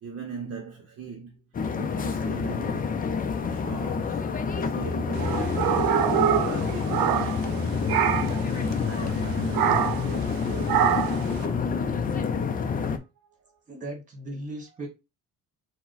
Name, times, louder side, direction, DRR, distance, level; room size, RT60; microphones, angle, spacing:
voice 1, 0.0-1.4 1.8-3.0 3.4-5.8 6.2-11.0 11.3-11.8 12.8-13.1 13.4-13.5 14.7-14.8, right 5 dB, 45° right, 0.8 m, -41 dB
sound 1, 1.6-13.0, left 5 dB, 25° left, 0.4 m, -28 dB
sound 2, 5.2-7.6 7.9-8.4 9.5-10.1 10.7-11.3, right 9 dB, 80° right, 0.6 m, -24 dB
voice 2, 13.7-14.9, right 1 dB, 20° right, 1.6 m, -37 dB
4.7 x 2.2 x 4.0 m
cardioid pair, 145°, 34 cm